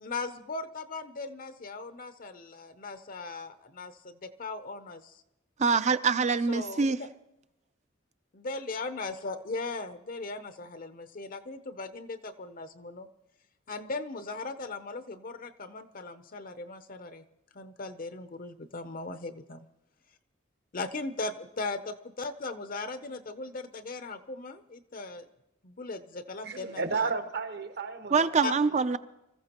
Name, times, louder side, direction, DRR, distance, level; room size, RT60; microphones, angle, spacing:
voice 1, 0.0-5.1 6.5-6.9 8.3-13.1 13.7-17.2 17.5-19.7 20.7-25.3 25.6-27.1 28.4-28.5, left 3 dB, 45° left, 0.7 m, -38 dB
voice 2, 5.6-7.0 28.1-29.0, right 5 dB, 35° right, 0.5 m, -25 dB
voice 3, 26.4-28.6, right 4 dB, 55° right, 1.1 m, -33 dB
25.5 x 14.5 x 3.0 m
head